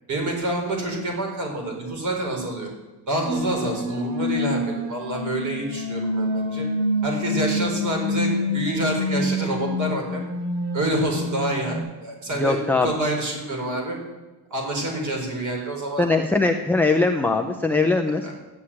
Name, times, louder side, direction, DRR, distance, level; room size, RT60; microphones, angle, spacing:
voice 1, 0.1-2.7 3.1-6.7 7.0-10.2 10.7-14.0 14.5-16.1 18.2-18.3, right 1 dB, 35° right, 1 dB, 4.6 m, -27 dB
sound 1, 3.3-11.8, left 1 dB, 60° right, 4.4 m, -27 dB
voice 2, 12.4-12.9 16.0-18.3, left 3 dB, 5° left, 2 dB, 0.5 m, -21 dB
13.0 x 9.7 x 8.6 m, 1.1 s
cardioid pair, 175°, 48 cm